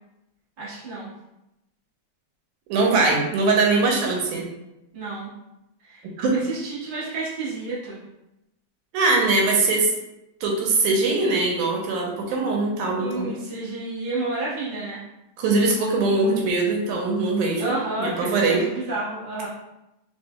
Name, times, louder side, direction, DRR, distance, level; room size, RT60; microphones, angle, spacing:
voice 1, 0.6-1.1 4.9-5.3 5.8-8.0 13.0-15.0 17.6-19.5, right 2 dB, 60° right, -9 dB, 0.5 m, -31 dB
voice 2, 2.7-4.5 6.2-6.4 8.9-9.9 10.4-13.3 15.4-18.7, right 3 dB, 80° right, 0 dB, 2.1 m, -21 dB
5.3 x 3.4 x 2.2 m, 0.91 s
omnidirectional pair, 3.6 m